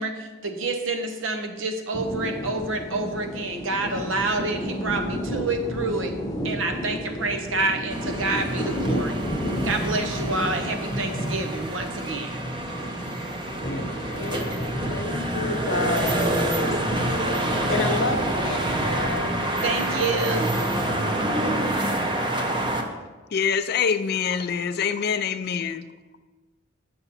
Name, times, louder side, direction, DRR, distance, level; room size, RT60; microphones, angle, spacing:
voice 1, 0.0-6.1 6.4-9.2 9.6-12.3 19.6-20.6, right 2 dB, 80° right, 6 dB, 0.9 m, -28 dB
sound 1, 1.9-20.1, equal, 20° left, 0.8 m, -32 dB
sound 2, 7.9-22.8, right 1 dB, 25° right, 0.7 m, -27 dB
voice 2, 13.6-16.7 17.5-19.4, left 3 dB, 75° left, 5 dB, 0.9 m, -30 dB
voice 3, 23.3-25.9, left 6 dB, 55° left, 11 dB, 0.4 m, -25 dB
7.8 x 5.9 x 4.2 m, 1.3 s
head